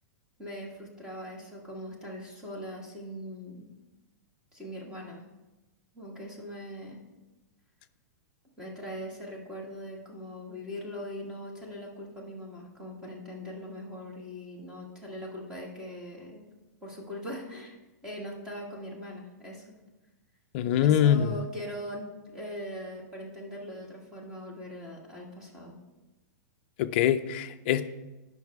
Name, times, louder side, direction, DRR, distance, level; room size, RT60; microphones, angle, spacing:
voice 1, 0.4-3.7 4.5-5.2 5.9-7.0 8.6-16.5 16.8-17.7 18.0-19.7 20.8-25.7, equal, 5° right, -3 dB, 1.4 m, -41 dB
voice 2, 20.5-21.4 26.8-27.9, left 10 dB, 35° left, 9 dB, 0.4 m, -24 dB
9.3 x 5.7 x 4.6 m, 1.1 s
supercardioid pair, 170°, 10 cm